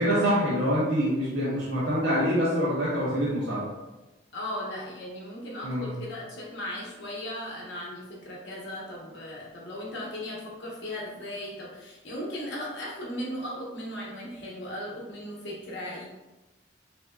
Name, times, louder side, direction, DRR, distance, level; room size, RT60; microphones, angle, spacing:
voice 1, 0.0-3.6 5.6-5.9, equal, 60° right, -9 dB, 0.7 m, -25 dB
voice 2, 4.3-16.0, left 1 dB, 65° left, -4 dB, 0.9 m, -37 dB
3.3 x 2.6 x 2.2 m, 1.1 s
head